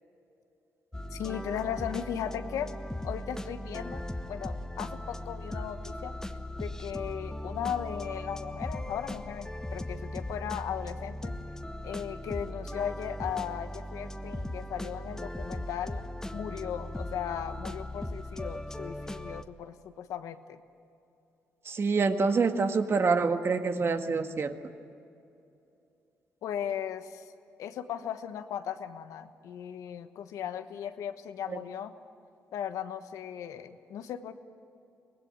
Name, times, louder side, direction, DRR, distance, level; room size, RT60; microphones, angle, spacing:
sound 1, 0.9-19.4, left 1 dB, 10° left, 1.2 m, -38 dB
voice 1, 1.1-2.7 3.0-6.1 6.6-11.3 11.8-16.0 16.3-20.6 26.4-27.2 27.6-31.9 32.5-34.3, left 9 dB, 80° left, 9 dB, 1.2 m, -37 dB
voice 2, 21.6-24.5 31.5-31.6, right 4 dB, 45° right, 7 dB, 1.7 m, -26 dB
24.0 x 19.0 x 9.0 m, 2.7 s
supercardioid pair, 65°, 6 cm